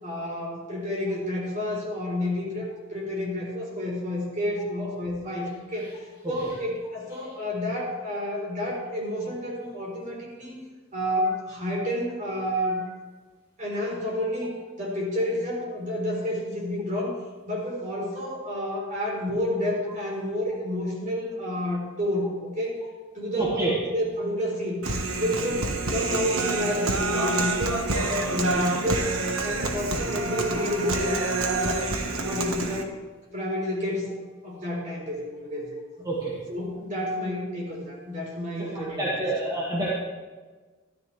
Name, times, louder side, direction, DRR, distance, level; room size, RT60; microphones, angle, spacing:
voice 1, 0.0-5.9 6.3-10.6 10.9-12.8 13.6-17.1 17.5-22.8 23.1-24.8 25.1-27.8 28.2-29.1 29.4-31.2 31.5-32.9 33.3-36.1 36.5-39.3, left 1 dB, 40° right, -3 dB, 4.0 m, -30 dB
voice 2, 23.4-23.7 36.1-36.3 38.7-39.9, right 2 dB, 20° right, -7 dB, 2.0 m, -27 dB
Human voice, 24.8-32.8, right 2 dB, 90° right, 1.3 m, -27 dB
13.5 x 12.0 x 3.3 m, 1.4 s
head